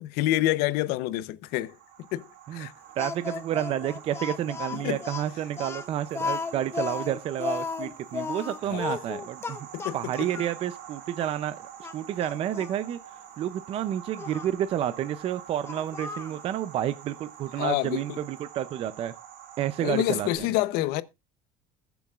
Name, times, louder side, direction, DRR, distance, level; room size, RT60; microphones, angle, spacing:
voice 1, 0.0-2.7 4.7-5.0 8.7-8.9 9.7-10.3 17.6-18.2 19.8-21.0, left 16 dB, 75° left, 0.7 m, -28 dB
sound 1, 1.4-20.4, right 9 dB, 90° right, 2.9 m, -46 dB
Speech, 3.0-10.6 11.2-11.3 11.8-12.8 14.2-14.5 15.6-16.4, left 5 dB, 15° left, 0.7 m, -34 dB
voice 2, 3.0-9.6 9.9-11.6 11.9-13.0 13.4-19.1 19.6-20.5, right 11 dB, 40° right, 0.5 m, -30 dB
21.0 x 7.0 x 2.4 m
cardioid pair, 170°, 16 cm